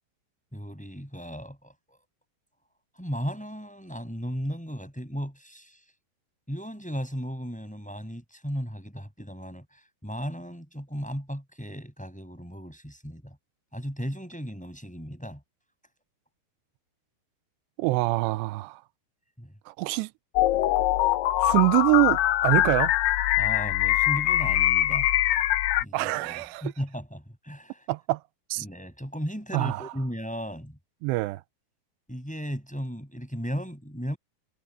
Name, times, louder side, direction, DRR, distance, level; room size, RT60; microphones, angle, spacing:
voice 1, 0.5-2.0 3.0-5.8 6.5-13.4 13.7-15.4 19.4-19.5 23.4-25.1 25.8-27.9 28.6-30.8 32.1-34.2, equal, ahead, 7.4 m, -36 dB
voice 2, 17.8-18.8 19.7-20.1 21.4-22.9 25.9-26.6 27.9-28.2 28.5-28.7 29.5-29.8 31.0-31.4, right 21 dB, 90° right, 2.8 m, -25 dB
sound 1, 20.4-25.8, left 14 dB, 75° left, 3.0 m, -23 dB
omnidirectional pair, 4.8 m